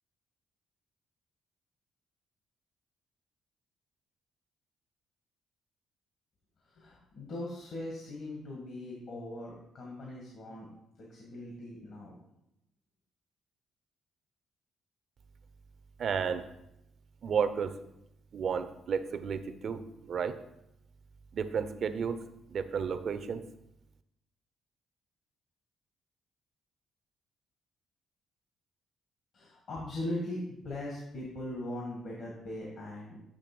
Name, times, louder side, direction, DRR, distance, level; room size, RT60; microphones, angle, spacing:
voice 1, 6.6-10.7 11.0-12.2 29.3-33.2, left 1 dB, 60° left, -3 dB, 1.8 m, -40 dB
voice 2, 16.0-16.5 17.2-17.7 18.3-20.4 21.3-22.2 22.5-23.4, right 6 dB, 60° right, 12 dB, 0.5 m, -32 dB
8.5 x 3.3 x 6.0 m, 0.84 s
cardioid pair, 90°, 0 cm